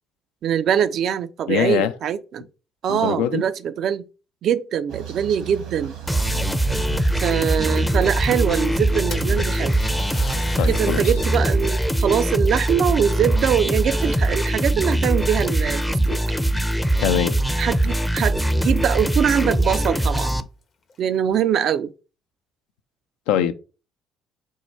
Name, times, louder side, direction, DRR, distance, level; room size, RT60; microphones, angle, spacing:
voice 1, 0.4-2.5 2.8-4.0 4.4-6.0 7.2-9.8 10.7-16.2 17.6-20.4 21.0-21.9, right 8 dB, 60° right, 0.3 m, -23 dB
voice 2, 1.5-1.9 2.9-3.5 10.6-11.0 17.0-17.4 23.3-23.5, left 10 dB, 75° left, 0.4 m, -22 dB
sound 1, 4.9-11.7, right 10 dB, 75° right, 1.0 m, -36 dB
sound 2, 6.1-20.4, right 1 dB, 5° left, 0.5 m, -22 dB
Splash splatter, 9.1-11.4 11.9-12.0 12.9-14.0 14.3-14.8 15.6-15.7 16.1-16.2 18.4-18.5 18.8-18.9 19.5-19.6 20.0-20.1 20.8-21.4, left 3 dB, 50° left, 0.8 m, -37 dB
4.4 x 2.2 x 4.3 m
hypercardioid pair, 50°, 0 cm